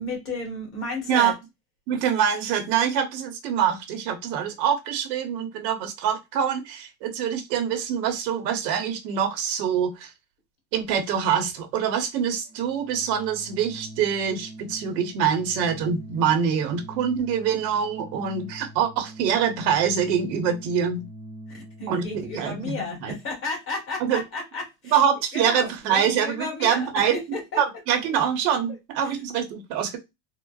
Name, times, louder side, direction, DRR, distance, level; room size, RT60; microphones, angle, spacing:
voice 1, 0.0-1.3 21.5-24.9 25.3-27.6 29.0-29.2, left 3 dB, 25° left, 1.3 m, -33 dB
voice 2, 1.9-10.1 10.7-21.0 21.9-23.2 24.0-24.2 24.9-27.2 27.6-30.0, right 8 dB, 80° right, 1.0 m, -25 dB
Organ, 12.4-22.8, right 1 dB, 30° right, 0.3 m, -44 dB
3.7 x 2.1 x 2.3 m
supercardioid pair, 165°, 50 cm